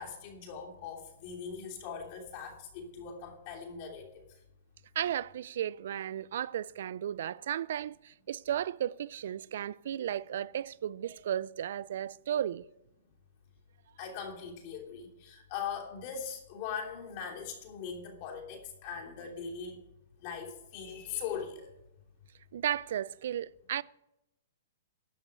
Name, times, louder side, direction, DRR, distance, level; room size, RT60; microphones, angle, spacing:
voice 1, 0.0-4.2 14.0-19.8 20.2-21.7, left 6 dB, 40° left, 3.0 m, -40 dB
voice 2, 5.0-12.6 22.5-23.8, right 10 dB, 65° right, 0.3 m, -34 dB
13.0 x 5.4 x 8.4 m
hypercardioid pair, 150°, 0 cm